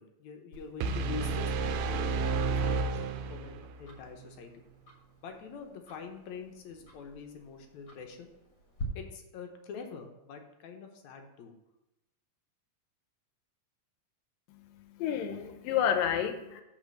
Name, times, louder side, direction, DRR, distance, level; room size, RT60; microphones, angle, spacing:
voice 1, 0.0-4.6 5.2-8.3 9.0-11.5, left 6 dB, 70° left, 4 dB, 1.9 m, -45 dB
Tick-tock, 0.5-8.8, left 2 dB, 45° left, 1.8 m, -51 dB
sound 1, 0.8-3.8, right 4 dB, 80° right, 2.1 m, -31 dB
voice 2, 14.5-16.6, left 9 dB, 85° left, 8 dB, 2.5 m, -31 dB
7.1 x 5.0 x 6.4 m, 0.93 s
omnidirectional pair, 3.9 m